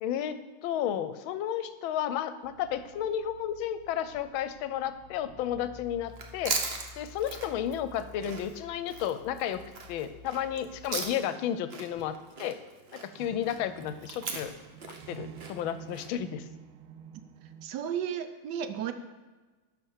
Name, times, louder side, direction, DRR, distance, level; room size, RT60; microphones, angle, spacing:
voice 1, 0.0-6.6 7.0-9.6 9.9-12.6 12.9-14.5 15.1-16.5, left 10 dB, 80° left, 12 dB, 1.4 m, -32 dB
sound 1, 2.4-11.0, left 3 dB, 10° left, 1.3 m, -52 dB
Chewing mastication, 6.1-11.4 11.7-16.1, right 4 dB, 50° right, 0.8 m, -38 dB
sound 2, 11.8-12.2 12.7-12.8 13.1-17.7, right 8 dB, 85° right, 1.4 m, -48 dB
voice 2, 17.6-18.9, right 9 dB, 70° right, 9 dB, 1.1 m, -33 dB
11.0 x 4.3 x 6.5 m, 1.3 s
omnidirectional pair, 2.2 m